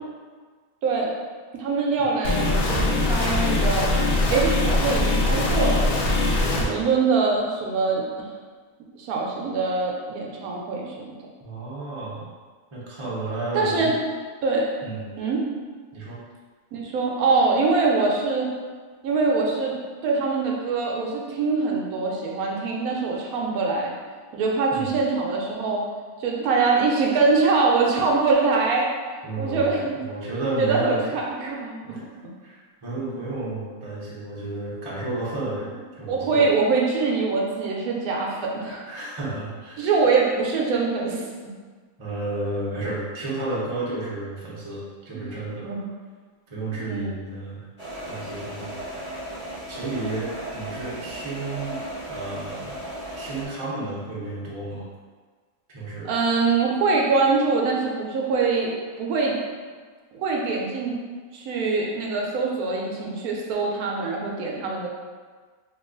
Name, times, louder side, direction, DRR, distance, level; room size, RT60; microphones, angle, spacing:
voice 1, 1.5-3.9 4.3-5.8 6.7-8.3 8.9-11.0 13.5-13.9 14.4-14.7 15.2-15.4 16.7-18.5 19.0-19.8 20.0-23.9 24.3-25.8 26.2-28.9 29.4-30.0 30.6-32.0 36.1-38.8 39.8-41.3 45.1-45.2 45.6-45.9 46.8-47.2 56.0-58.7 59.0-59.3 60.1-60.9 61.3-64.9, right 4 dB, 75° right, -1 dB, 1.0 m, -23 dB
sound 1, 2.2-6.6, left 2 dB, 75° left, 0.5 m, -22 dB
voice 2, 6.3-6.8 11.4-12.3 12.7-13.9 14.8-15.1 15.9-16.2 24.7-24.9 29.2-29.7 29.9-31.0 31.8-32.0 32.4-36.5 38.9-40.0 42.0-45.7 46.5-47.7 48.1-49.0 49.7-51.8 52.1-52.8 53.2-54.9 55.7-56.1, right 2 dB, 30° right, -7 dB, 0.6 m, -32 dB
sound 2, 47.8-53.5, right 1 dB, 30° left, 0.7 m, -36 dB
2.9 x 2.3 x 3.7 m, 1.5 s
omnidirectional pair, 1.6 m